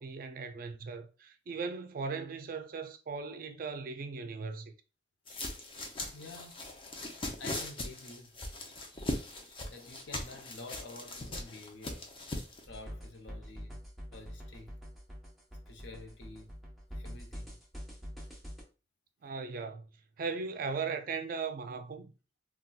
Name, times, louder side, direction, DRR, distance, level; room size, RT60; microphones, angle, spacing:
voice 1, 0.0-4.7 19.2-19.9 20.2-22.1, right 5 dB, 50° right, 0.4 m, -38 dB
sound 1, 5.3-12.6, left 1 dB, 30° left, 0.5 m, -40 dB
voice 2, 6.1-6.7 7.4-8.3 9.7-12.1 12.7-13.8 14.1-14.7 15.7-16.5 17.0-17.5, left 3 dB, 75° left, 0.7 m, -49 dB
sound 2, 12.7-18.6, equal, ahead, 0.8 m, -45 dB
4.0 x 2.3 x 2.3 m
head